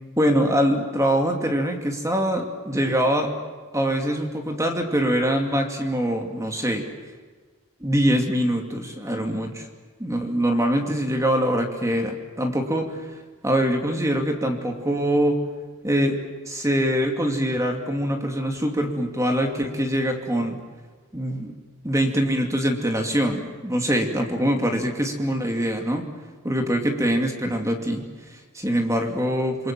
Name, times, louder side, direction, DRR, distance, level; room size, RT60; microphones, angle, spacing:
voice 1, 0.2-3.4 3.7-6.9 7.8-9.7 10.0-13.1 13.4-15.4 15.8-20.6 21.1-21.5 21.8-26.1 26.4-29.7, equal, 15° right, 3 dB, 2.6 m, -24 dB
28.5 x 23.0 x 7.6 m, 1.4 s
head